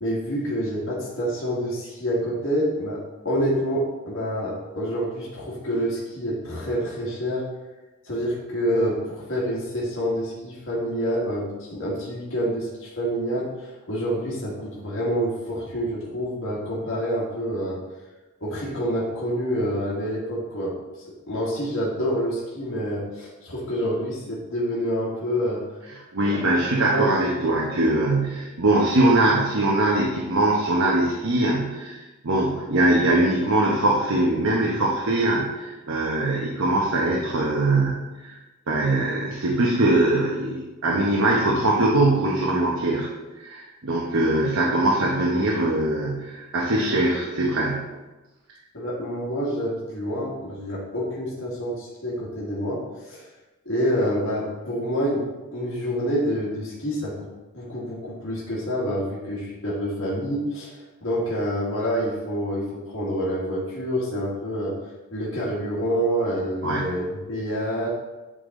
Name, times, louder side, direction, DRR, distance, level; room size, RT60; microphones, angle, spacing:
voice 1, 0.0-3.0 3.3-7.4 8.0-17.8 18.4-20.7 21.3-25.6 26.2-26.4 26.9-27.6 48.7-53.3 53.7-55.2 55.5-57.3 57.5-64.7 65.1-67.9, equal, 60° left, -6 dB, 1.7 m, -27 dB
voice 2, 26.1-38.3 38.7-43.1 43.4-47.9 66.6-66.9, right 2 dB, 70° right, -2 dB, 0.9 m, -22 dB
8.3 x 3.9 x 3.7 m, 1.1 s
head